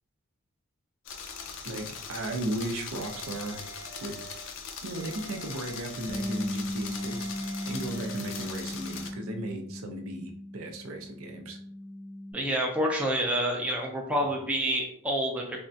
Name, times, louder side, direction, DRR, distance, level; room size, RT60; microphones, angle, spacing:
sound 1, 1.1-9.1, left 6 dB, 60° left, 0.4 m, -41 dB
voice 1, 1.6-3.6 4.0-4.2 4.8-11.6, right 1 dB, 75° right, 4 dB, 0.5 m, -36 dB
sound 2, 3.0-4.5 5.0-6.5 7.0-8.5, right 5 dB, 35° right, 0.7 m, -48 dB
Bass guitar, 6.1-12.3, left 1 dB, 80° left, 0.8 m, -37 dB
voice 2, 12.3-15.6, equal, 5° right, -1 dB, 0.4 m, -28 dB
3.5 x 2.1 x 2.6 m, 0.63 s
head